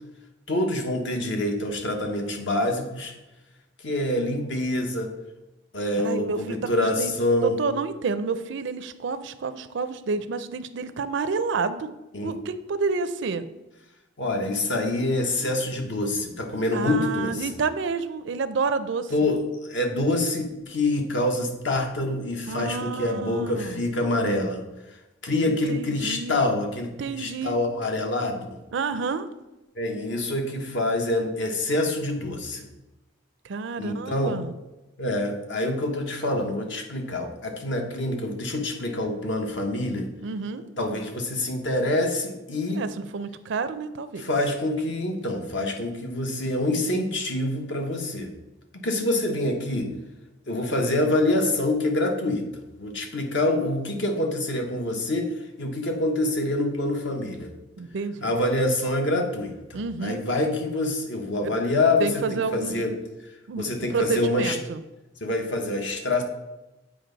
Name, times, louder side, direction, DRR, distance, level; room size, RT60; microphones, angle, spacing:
voice 1, 0.5-3.1 3.8-5.1 5.7-7.6 12.1-12.4 14.2-17.5 19.1-24.6 25.2-28.5 29.8-32.7 33.8-34.3 35.0-40.1 40.8-42.8 44.2-48.3 48.8-49.9 50.5-55.3 55.6-57.5 58.2-62.9 63.6-64.6 65.2-66.2, left 1 dB, 65° left, 3 dB, 1.1 m, -26 dB
voice 2, 6.0-7.1 7.4-11.9 12.2-13.5 16.7-19.3 22.5-23.8 25.5-26.5 27.0-27.6 28.7-29.3 33.4-34.5 40.2-40.6 42.7-44.3 57.8-58.3 59.7-60.2 61.4-61.5 62.0-62.9 63.5-64.8, right 4 dB, 65° right, 12 dB, 0.5 m, -29 dB
7.8 x 4.9 x 3.9 m, 1.0 s
head